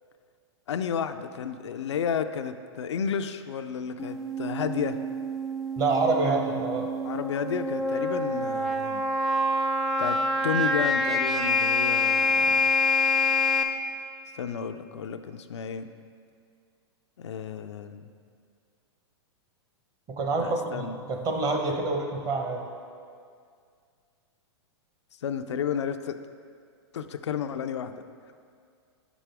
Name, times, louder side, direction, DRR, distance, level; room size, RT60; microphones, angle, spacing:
voice 1, 0.7-5.0 7.0-9.0 10.0-12.7 14.3-15.9 17.2-18.1 20.4-21.0 25.2-26.2 26.9-28.0, left 7 dB, 90° left, 9 dB, 0.4 m, -32 dB
sound 1, 4.0-13.6, left 2 dB, ahead, 0.4 m, -26 dB
voice 2, 5.8-6.9 20.1-22.6, right 3 dB, 25° right, 2 dB, 0.8 m, -27 dB
7.6 x 6.0 x 3.4 m, 2.2 s
hypercardioid pair, 130°, 14 cm